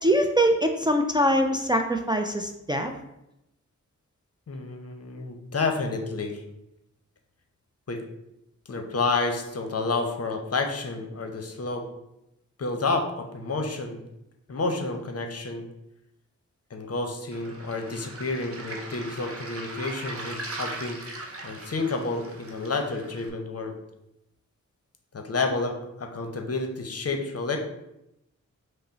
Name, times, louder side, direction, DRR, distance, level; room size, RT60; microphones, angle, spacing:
voice 1, 0.0-2.9, equal, 15° right, 3 dB, 0.4 m, -23 dB
voice 2, 4.5-6.4 7.9-8.0 8.7-11.8 12.6-14.0 14.5-15.6 16.7-21.0 21.4-23.8 25.1-27.6, left 3 dB, 50° left, 4 dB, 0.7 m, -30 dB
Waves surf, 17.3-23.3, right 2 dB, 45° right, 0.8 m, -39 dB
5.2 x 2.0 x 3.9 m, 0.85 s
cardioid pair, 50°, 31 cm